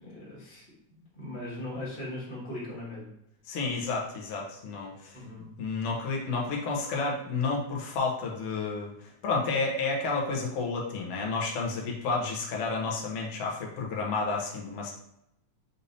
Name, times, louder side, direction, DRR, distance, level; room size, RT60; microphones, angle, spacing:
voice 1, 0.0-3.1 5.1-5.5, left 1 dB, 25° left, -8 dB, 1.3 m, -39 dB
voice 2, 3.4-5.2 5.6-14.9, left 4 dB, 65° left, -2 dB, 1.7 m, -31 dB
6.6 x 2.7 x 2.6 m, 0.80 s
omnidirectional pair, 3.4 m